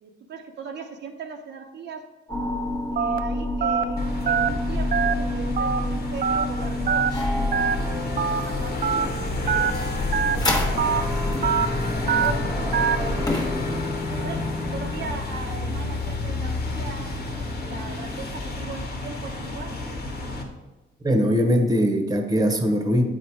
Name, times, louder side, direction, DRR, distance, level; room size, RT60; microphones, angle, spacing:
voice 1, 0.0-2.0 2.9-7.0 7.6-9.9 10.3-10.9 11.7-11.8 12.2-13.2 14.2-14.4 14.7-17.1 17.6-19.7, right 4 dB, 60° right, 1 dB, 0.9 m, -38 dB
sound 1, 2.3-13.6, left 2 dB, 20° left, 1.3 m, -29 dB
Telephone, 3.0-3.2 3.6-3.8 4.3-4.5 4.9-5.1 5.6-5.8 6.2-6.4 6.9-7.1 7.5-7.7 8.2-8.4 8.8-9.0 9.5-9.7 10.1-10.4 10.8-11.0 11.4-11.7 12.1-12.3 12.7-13.0, right 7 dB, 45° right, 0.5 m, -22 dB
sound 2, 4.0-20.4, left 2 dB, 55° left, 1.4 m, -30 dB
voice 2, 21.0-23.0, equal, 20° right, 4 dB, 1.2 m, -21 dB
7.9 x 4.4 x 4.7 m, 1.1 s
cardioid pair, 90°, 20 cm